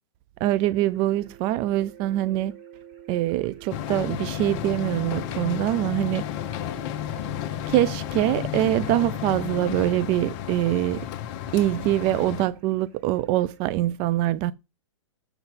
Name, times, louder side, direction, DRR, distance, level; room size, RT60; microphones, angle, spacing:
voice 1, 0.4-2.5 3.1-6.2 7.7-11.0 11.5-14.5, right 14 dB, 30° right, 0.4 m, -24 dB
sound 1, 0.6-13.7, right 9 dB, 50° right, 3.8 m, -48 dB
sound 2, 3.7-12.5, left 13 dB, 40° left, 0.8 m, -32 dB
7.9 x 5.3 x 4.1 m
hypercardioid pair, 125°, 17 cm